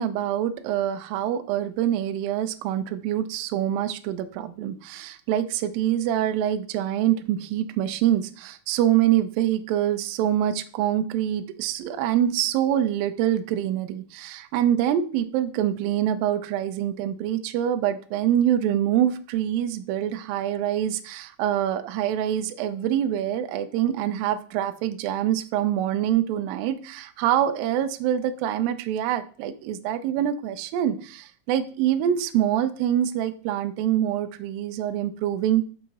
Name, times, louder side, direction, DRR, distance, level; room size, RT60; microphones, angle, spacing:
voice 1, 0.0-35.7, right 11 dB, 80° right, 9 dB, 2.2 m, -25 dB
6.5 x 4.8 x 4.0 m, 0.42 s
omnidirectional pair, 4.4 m